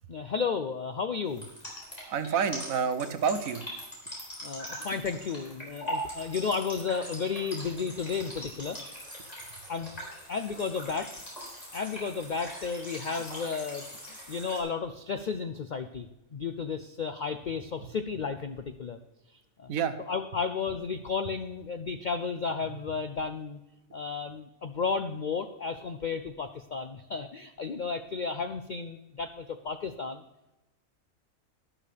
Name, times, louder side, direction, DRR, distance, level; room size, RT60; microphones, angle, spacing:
voice 1, 0.1-1.5 4.4-8.8 9.7-11.1 11.7-19.0 19.3-19.7 20.0-23.6 23.9-30.2, left 5 dB, 90° left, 9 dB, 0.4 m, -33 dB
sound 1, 1.3-14.6, equal, 25° left, 4.0 m, -41 dB
voice 2, 2.1-3.6 19.7-20.0, right 6 dB, 75° right, 11 dB, 1.2 m, -28 dB
12.0 x 12.0 x 3.3 m, 0.96 s
omnidirectional pair, 1.5 m